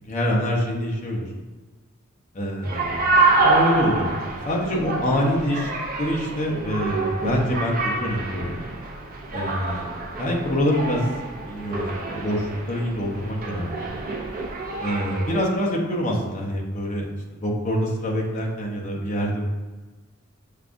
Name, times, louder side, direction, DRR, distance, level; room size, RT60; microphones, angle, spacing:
voice 1, 0.1-1.3 2.3-5.7 6.0-8.6 9.3-9.9 10.2-11.0 11.5-13.9 14.8-17.1 17.4-19.4, equal, 35° left, -2 dB, 0.8 m, -25 dB
sound 1, 2.6-15.4, right 3 dB, 45° right, 0.6 m, -26 dB
6.5 x 2.3 x 2.5 m, 1.3 s
head